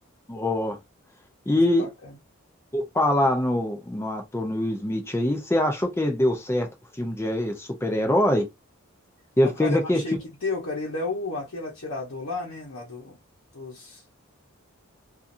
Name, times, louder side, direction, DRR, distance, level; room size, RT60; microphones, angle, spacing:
voice 1, 0.3-0.8 1.5-1.9 2.7-6.7 7.0-8.5 9.4-10.0, left 1 dB, 10° left, 0.4 m, -23 dB
voice 2, 1.5-2.1 9.6-10.2 10.4-13.2 13.5-14.0, left 3 dB, 70° left, 0.8 m, -32 dB
2.8 x 2.4 x 2.5 m
head